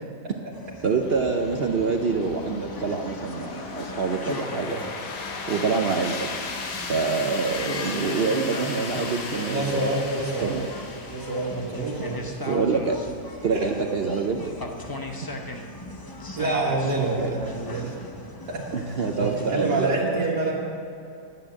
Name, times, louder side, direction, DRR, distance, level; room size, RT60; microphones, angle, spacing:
sound 1, 0.5-20.0, left 2 dB, 30° left, 0.4 m, -39 dB
voice 1, 0.8-4.8 5.5-6.3 6.9-10.0 10.4-10.7 12.5-13.0 13.4-14.6 17.2-17.3 18.7-20.2, right 4 dB, 55° right, 4 dB, 0.6 m, -26 dB
sound 2, 1.0-19.6, left 3 dB, 85° left, 1.8 m, -38 dB
sound 3, 3.5-8.7, left 6 dB, 60° left, 1.0 m, -41 dB
voice 2, 9.5-10.6 11.1-12.5 13.5-13.6 16.4-17.9 18.5-18.6 19.2-20.5, right 2 dB, 90° right, -5 dB, 2.1 m, -27 dB
11.0 x 9.0 x 7.3 m, 2.6 s
omnidirectional pair, 1.7 m